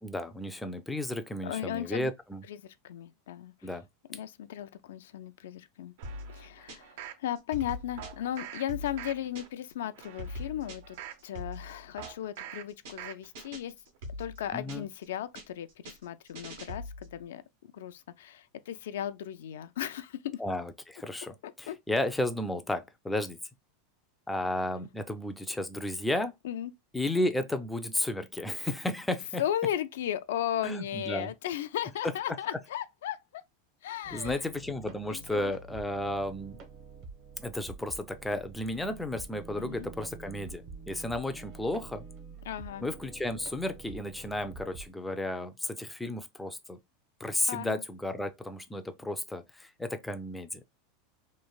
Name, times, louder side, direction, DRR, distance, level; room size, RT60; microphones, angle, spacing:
voice 1, 0.0-2.4 3.6-3.8 14.5-14.9 20.4-23.4 24.3-26.3 26.9-29.4 30.6-31.3 34.1-36.6 37.4-42.1 42.8-46.8 47.2-50.6, left 1 dB, 5° left, 0.3 m, -33 dB
voice 2, 1.4-2.1 2.5-3.7 4.1-5.9 6.2-11.0 11.2-13.7 14.2-20.4 21.4-21.8 26.4-26.7 29.4-33.4 33.8-34.4 35.1-35.6 39.6-39.9 42.5-42.9 47.5-47.8, left 11 dB, 85° left, 0.3 m, -36 dB
sound 1, 6.0-7.2 8.0-8.6 9.0-9.5 9.9-11.2 12.0-12.6 13.0-13.5 13.9-14.0, right 10 dB, 70° right, 0.4 m, -45 dB
sound 2, 6.0-7.1 7.4-9.7 10.0-12.4 12.7-13.1 13.4-15.1 15.4-17.2, left 1 dB, 85° right, 1.3 m, -42 dB
sound 3, 34.0-44.9, right 4 dB, 45° right, 0.8 m, -47 dB
3.0 x 2.5 x 2.2 m
supercardioid pair, 150°, 0 cm